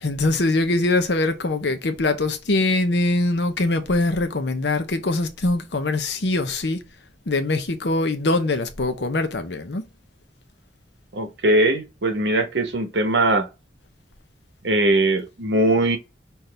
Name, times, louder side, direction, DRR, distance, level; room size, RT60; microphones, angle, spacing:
voice 1, 0.0-6.8 7.3-9.9, left 2 dB, 75° left, 0.8 m, -23 dB
voice 2, 11.1-13.5 14.6-16.0, right 1 dB, 80° right, 1.1 m, -20 dB
5.7 x 2.6 x 3.3 m
head